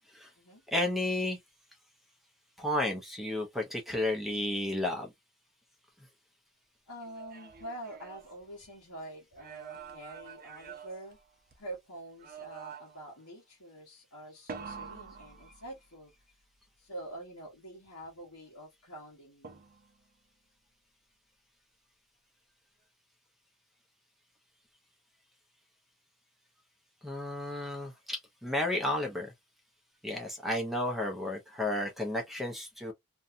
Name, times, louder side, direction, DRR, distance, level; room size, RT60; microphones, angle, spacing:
voice 1, 0.7-1.4 2.6-5.1 27.0-29.3 30.0-32.9, left 1 dB, ahead, 0.6 m, -32 dB
voice 2, 6.9-11.2 11.6-16.1 16.8-19.6, right 1 dB, 80° left, 1.1 m, -46 dB
sound 1, 7.0-8.9 9.3-11.7 12.2-13.2 14.5-16.1 19.4-20.1, right 6 dB, 40° right, 0.6 m, -47 dB
2.7 x 2.3 x 2.4 m
head